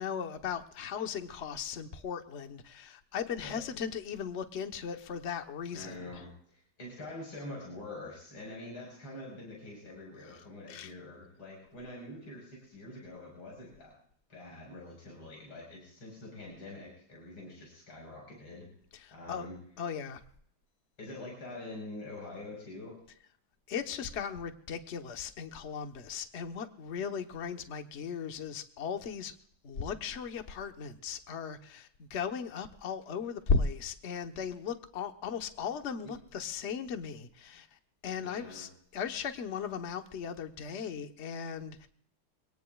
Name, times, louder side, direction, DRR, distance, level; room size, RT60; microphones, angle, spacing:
voice 1, 0.0-6.1 10.7-10.9 19.0-19.5 19.8-20.2 23.7-29.3 29.6-37.7 38.0-41.9, left 6 dB, 40° left, 6 dB, 1.1 m, -37 dB
voice 2, 5.7-14.0 14.3-18.7 19.1-19.6 21.0-23.0 36.0-36.1 38.2-38.7, left 2 dB, 75° left, -2 dB, 5.8 m, -45 dB
25.0 x 18.0 x 2.4 m, 0.64 s
omnidirectional pair, 2.3 m